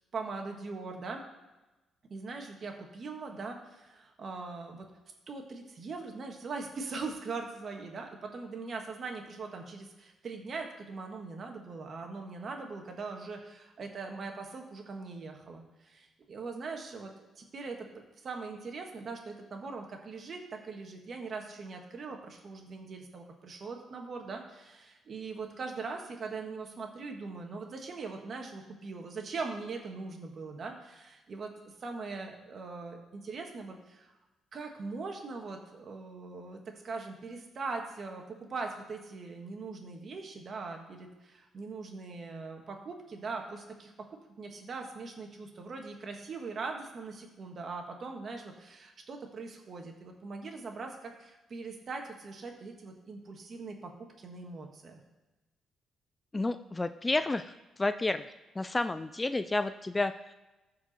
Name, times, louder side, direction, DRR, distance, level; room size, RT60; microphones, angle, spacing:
voice 1, 0.1-1.2 2.1-4.9 5.3-34.1 34.5-43.9 44.4-53.9 54.2-55.0, right 4 dB, 50° right, 3 dB, 1.8 m, -41 dB
voice 2, 56.3-58.2 58.5-60.3, left 2 dB, 20° left, 11 dB, 0.4 m, -31 dB
14.5 x 4.9 x 4.4 m, 1.1 s
cardioid pair, 90°, 0 cm